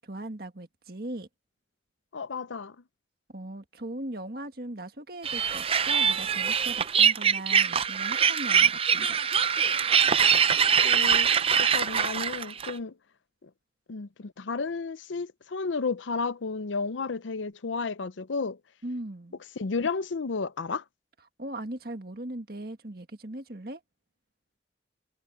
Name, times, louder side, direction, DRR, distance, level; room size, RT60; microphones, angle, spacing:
voice 1, 0.0-1.3 3.3-9.2 18.8-19.4 21.4-23.8, right 1 dB, 55° right, 1.8 m, -39 dB
voice 2, 2.1-2.8 10.8-11.3 11.6-12.9 13.4-13.5 13.9-18.6 19.6-20.8, left 4 dB, 90° left, 0.6 m, -32 dB
sound 1, 5.2-12.7, right 7 dB, 30° right, 0.5 m, -23 dB
head